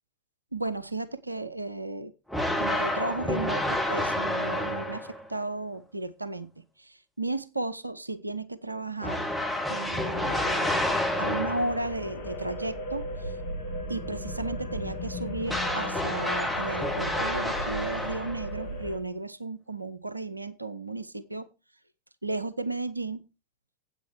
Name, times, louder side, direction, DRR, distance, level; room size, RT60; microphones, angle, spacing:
voice 1, 0.5-2.1 2.6-6.5 6.8-9.3 9.7-10.8 11.2-13.3 13.9-21.5 22.2-23.2, right 2 dB, 85° right, 0.6 m, -34 dB
sound 1, 2.3-5.3 9.0-11.9 15.5-18.6, left 1 dB, ahead, 1.9 m, -29 dB
sound 2, 10.1-19.0, left 1 dB, 60° left, 2.2 m, -36 dB
9.1 x 8.2 x 4.6 m
figure-of-eight pair, 90°, 0 cm